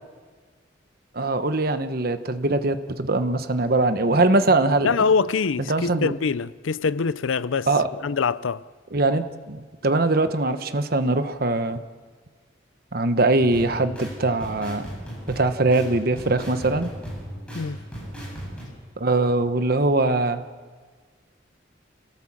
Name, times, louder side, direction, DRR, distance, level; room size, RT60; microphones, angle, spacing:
voice 1, 1.1-4.9 5.7-6.1 7.7-7.9 8.9-11.8 12.9-14.9 15.3-16.9 19.0-20.4, right 2 dB, 50° right, 1.1 m, -22 dB
voice 2, 4.8-7.7 8.0-8.6 17.5-17.8, left 5 dB, 85° left, 0.5 m, -24 dB
sound 1, 13.4-18.6, equal, 5° left, 7.9 m, -36 dB
28.0 x 17.5 x 7.4 m
head